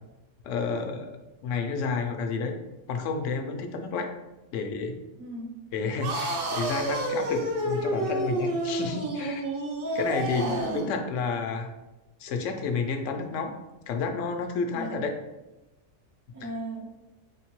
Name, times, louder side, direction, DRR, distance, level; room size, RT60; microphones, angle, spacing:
voice 1, 0.4-1.1 1.4-2.6 2.9-4.1 4.5-4.9 5.7-9.4 9.9-11.7 12.2-13.6 13.9-15.1, left 4 dB, 85° left, 5 dB, 0.9 m, -30 dB
voice 2, 5.2-5.7 9.9-10.0 10.4-10.9 14.7-15.1 16.3-16.9, right 1 dB, 85° right, -1 dB, 1.3 m, -37 dB
sound 1, 6.0-10.9, right 1 dB, 55° right, 0.8 m, -29 dB
3.8 x 3.5 x 3.0 m, 1.0 s
omnidirectional pair, 1.3 m